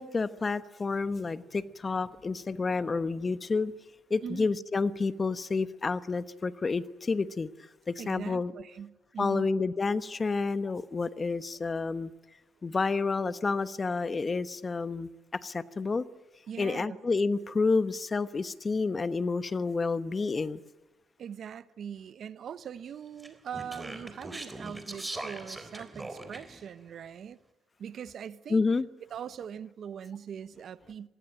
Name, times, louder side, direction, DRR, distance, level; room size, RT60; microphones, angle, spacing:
voice 1, 0.0-3.7 4.1-7.5 7.9-8.5 9.2-12.1 12.6-16.0 16.6-20.6 28.5-28.8, left 4 dB, 30° left, 1.1 m, -29 dB
voice 2, 8.0-9.5 16.5-17.0 21.2-27.4 27.8-28.6 29.1-31.1, right 8 dB, 60° right, 1.0 m, -41 dB
Speech, 23.2-26.6, right 2 dB, 15° right, 3.7 m, -41 dB
26.0 x 19.5 x 9.0 m
cardioid pair, 90°, 0 cm